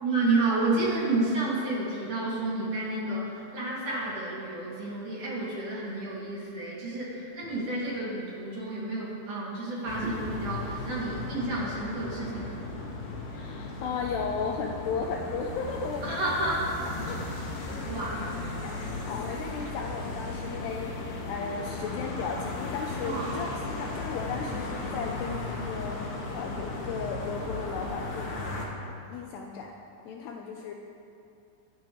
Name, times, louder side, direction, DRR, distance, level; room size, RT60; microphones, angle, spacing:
voice 1, 0.0-12.7 16.0-17.0 17.8-18.4 23.0-23.4, right 2 dB, 50° right, -7 dB, 3.4 m, -30 dB
sound 1, 9.9-28.7, left 2 dB, 65° left, 3.3 m, -36 dB
voice 2, 13.3-16.3 17.0-20.9 21.3-26.0 26.3-29.7 30.1-30.7, left 5 dB, 80° left, 1 dB, 2.5 m, -36 dB
24.0 x 9.4 x 3.1 m, 2.6 s
omnidirectional pair, 5.3 m